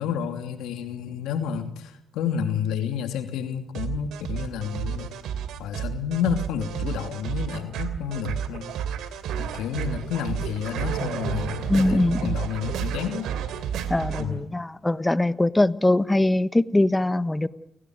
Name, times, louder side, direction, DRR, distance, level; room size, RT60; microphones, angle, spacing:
voice 1, 0.0-5.1 5.6-8.7 9.4-13.3 14.2-14.4, left 8 dB, 90° left, 7 dB, 2.8 m, -30 dB
sound 1, 3.7-14.2, right 8 dB, 85° right, 2.9 m, -31 dB
voice 2, 11.7-12.4 13.9-17.5, left 2 dB, 15° left, 15 dB, 1.2 m, -22 dB
30.0 x 18.0 x 9.5 m, 0.82 s
cardioid pair, 90°, 0 cm